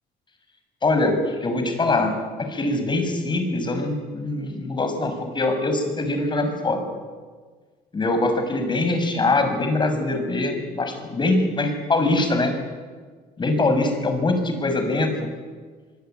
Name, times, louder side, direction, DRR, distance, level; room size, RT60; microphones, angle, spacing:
voice 1, 0.8-6.8 7.9-12.5 13.4-15.3, left 2 dB, 25° left, 7 dB, 6.4 m, -23 dB
25.0 x 24.0 x 9.4 m, 1.5 s
cardioid pair, 110°, 17 cm